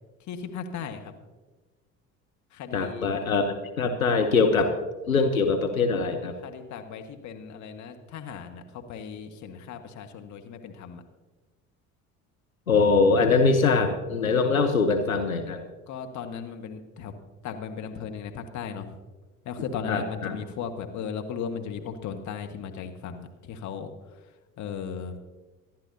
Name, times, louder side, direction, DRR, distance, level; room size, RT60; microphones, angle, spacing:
voice 1, 0.3-1.1 2.5-3.1 6.4-8.6 8.9-11.0 15.9-17.1 17.4-18.9 19.4-23.9 24.6-25.1, left 6 dB, 45° left, 5 dB, 1.6 m, -36 dB
voice 2, 2.7-4.8 5.1-6.3 12.7-15.6 19.9-20.4, left 4 dB, 85° left, 4 dB, 0.9 m, -23 dB
25.0 x 11.0 x 2.8 m, 1.2 s
figure-of-eight pair, 60°, 40 cm